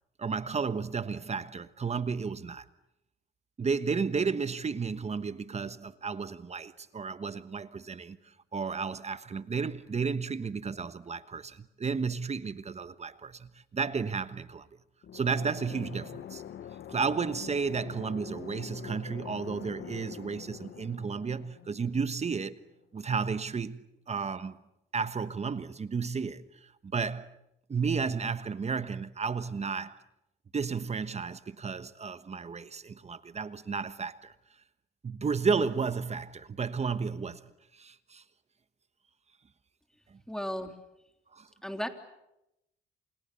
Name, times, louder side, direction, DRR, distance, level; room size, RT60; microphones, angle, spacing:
voice 1, 0.2-2.7 3.6-14.7 15.1-16.4 16.9-22.5 22.9-24.6 24.9-27.3 27.7-30.0 30.5-34.3 35.0-37.4 37.7-38.2 40.1-40.2 41.3-41.5, right 5 dB, 35° right, 1.3 m, -33 dB
sound 1, 15.0-22.7, left 10 dB, 70° left, 1.4 m, -45 dB
voice 2, 40.3-40.8 41.6-41.9, equal, 5° left, 3.3 m, -34 dB
28.5 x 28.0 x 6.9 m
cardioid pair, 90°, 20 cm